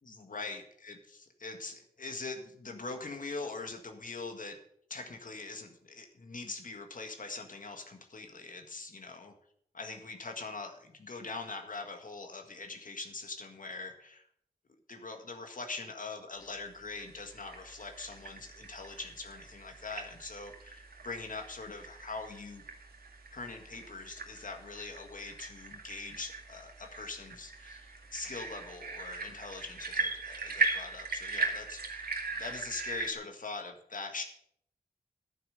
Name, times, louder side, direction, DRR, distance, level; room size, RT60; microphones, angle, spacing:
voice 1, 0.0-4.6 4.9-9.3 9.7-14.2 14.9-22.6 23.3-34.2, left 3 dB, 60° left, 4 dB, 1.8 m, -42 dB
sound 1, 16.7-33.1, right 4 dB, 75° right, 2.2 m, -39 dB
11.0 x 9.2 x 6.5 m, 0.68 s
cardioid pair, 65°, 16 cm